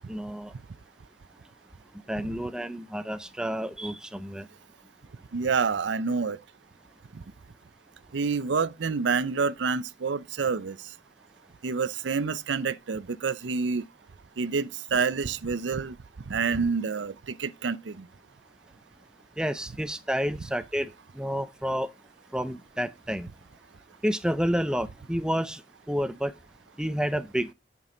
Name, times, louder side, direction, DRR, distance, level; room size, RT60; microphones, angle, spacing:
voice 1, 0.1-0.5 2.1-4.5 19.4-20.9 21.1-21.9 22.3-23.3 24.0-25.6 25.9-26.3 26.8-27.5, equal, 5° right, 0.5 m, -29 dB
voice 2, 5.3-6.4 8.1-10.8 11.6-13.8 14.4-15.9 16.3-17.1 17.4-17.8, right 5 dB, 75° right, 0.5 m, -27 dB
8.9 x 6.0 x 3.8 m
head